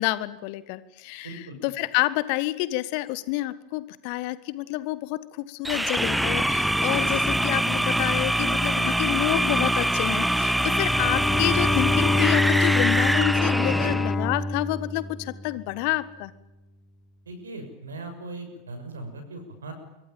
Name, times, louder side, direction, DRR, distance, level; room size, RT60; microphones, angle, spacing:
voice 1, 0.0-16.3, left 18 dB, 45° left, 16 dB, 1.5 m, -29 dB
voice 2, 1.2-1.6 17.3-19.7, right 2 dB, 70° right, 8 dB, 6.5 m, -39 dB
sound 1, 5.6-14.1, right 1 dB, ahead, 1.0 m, -24 dB
Bowed string instrument, 10.7-15.7, left 3 dB, 15° left, 2.5 m, -26 dB
26.0 x 24.5 x 9.0 m, 0.93 s
figure-of-eight pair, 90°, 0 cm